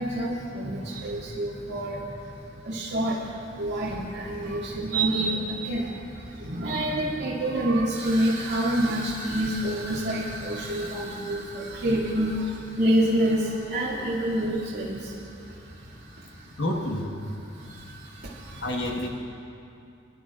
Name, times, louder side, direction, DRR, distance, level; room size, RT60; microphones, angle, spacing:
voice 1, 0.0-2.4 2.6-15.2 15.8-16.4 17.5-18.8, right 1 dB, 60° right, -10 dB, 2.3 m, -28 dB
voice 2, 16.6-17.1 18.6-19.1, left 1 dB, 65° left, 1 dB, 1.3 m, -28 dB
28.5 x 11.0 x 2.5 m, 2.6 s
head